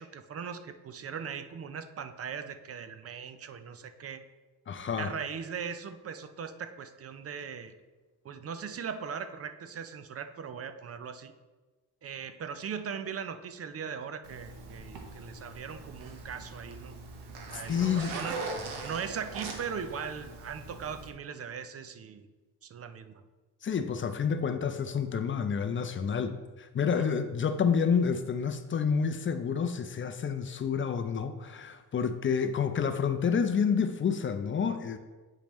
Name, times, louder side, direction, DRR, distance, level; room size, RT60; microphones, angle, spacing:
voice 1, 0.0-4.2 5.0-7.7 8.2-11.3 12.0-16.9 17.5-18.4 18.8-22.3 22.6-23.2 26.9-27.1, right 7 dB, 35° right, 10 dB, 0.5 m, -39 dB
voice 2, 4.7-5.1 17.7-18.2 23.6-35.0, left 6 dB, 30° left, 8 dB, 0.5 m, -29 dB
Zipper (clothing), 14.2-21.1, right 3 dB, 70° right, 1.2 m, -41 dB
8.7 x 5.1 x 3.1 m, 1.3 s
cardioid pair, 95°, 41 cm